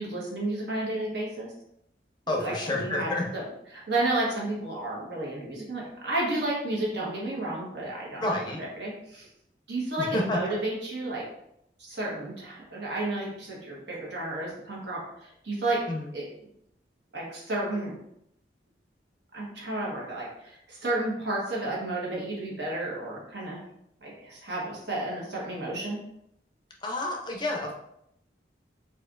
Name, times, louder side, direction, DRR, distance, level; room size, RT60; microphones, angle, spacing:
voice 1, 0.0-1.5 2.3-3.4 3.7-8.3 8.6-9.3 9.7-11.2 11.8-15.8 16.1-16.3 17.1-18.0 19.3-23.6 24.0-26.0, right 2 dB, 70° right, -4 dB, 1.1 m, -32 dB
voice 2, 2.3-3.3 8.2-8.6 10.0-10.5 15.9-16.1 26.8-27.7, left 1 dB, 25° left, 0 dB, 0.5 m, -29 dB
4.2 x 2.5 x 2.4 m, 0.76 s
head